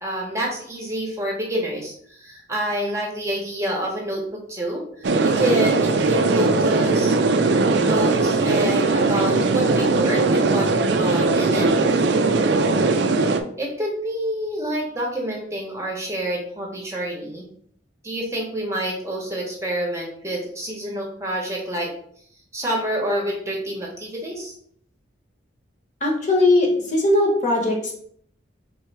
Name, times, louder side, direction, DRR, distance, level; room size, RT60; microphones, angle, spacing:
voice 1, 0.0-4.2 4.5-7.1 7.7-11.7 13.6-17.5 18.0-21.9 22.5-24.5, right 1 dB, 15° right, -1 dB, 0.9 m, -27 dB
sound 1, 5.0-13.4, right 3 dB, 65° right, 0.4 m, -19 dB
voice 2, 26.0-27.9, left 2 dB, 40° left, 0 dB, 1.0 m, -19 dB
3.6 x 3.0 x 4.6 m, 0.63 s
head